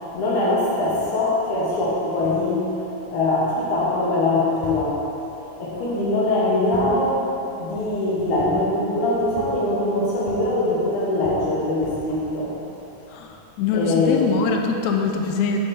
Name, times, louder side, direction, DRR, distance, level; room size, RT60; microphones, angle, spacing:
voice 1, 0.1-2.6 3.1-5.0 5.6-7.3 7.6-12.6 13.7-14.4, left 2 dB, 70° left, -5 dB, 2.6 m, -22 dB
voice 2, 13.1-15.6, left 5 dB, 90° left, 3 dB, 1.6 m, -23 dB
7.8 x 6.8 x 4.2 m, 3.0 s
omnidirectional pair, 3.9 m